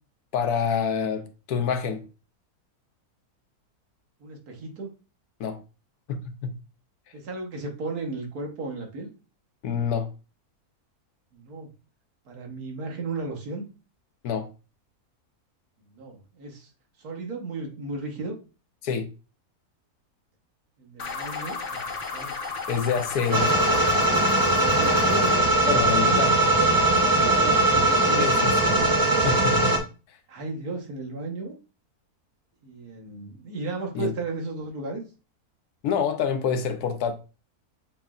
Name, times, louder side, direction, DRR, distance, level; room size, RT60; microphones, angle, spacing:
voice 1, 0.3-2.0 5.4-5.6 6.1-6.5 9.6-10.1 14.2-14.5 18.8-19.1 22.7-23.5 25.7-26.5 28.2-28.8 29.2-29.8 33.9-34.1 35.8-37.1, left 6 dB, 80° left, 1.2 m, -27 dB
voice 2, 4.2-4.9 7.1-9.1 11.3-11.7 12.3-13.6 15.9-16.7 17.0-18.4 20.8-22.3 24.6-25.4 26.0-26.2 27.1-28.8 30.3-31.5 32.6-35.0, right 3 dB, 75° right, 1.7 m, -34 dB
sound 1, 21.0-25.4, left 4 dB, 55° left, 1.2 m, -34 dB
sound 2, 23.3-29.8, right 1 dB, 35° right, 0.3 m, -20 dB
7.1 x 3.1 x 2.4 m
omnidirectional pair, 1.6 m